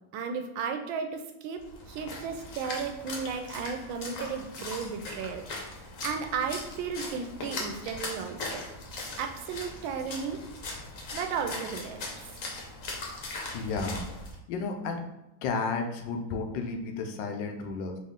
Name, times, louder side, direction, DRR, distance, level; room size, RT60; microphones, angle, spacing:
voice 1, 0.1-1.6 1.9-5.4 6.0-8.7 9.2-10.4 11.1-12.1, right 6 dB, 85° right, 6 dB, 1.3 m, -34 dB
Splash splatter, 1.6-14.3, left 2 dB, 55° left, 1.1 m, -39 dB
voice 2, 13.5-14.1 14.5-15.0 15.4-18.0, left 4 dB, 75° left, 4 dB, 1.2 m, -32 dB
4.3 x 3.1 x 3.6 m, 0.88 s
omnidirectional pair, 2.1 m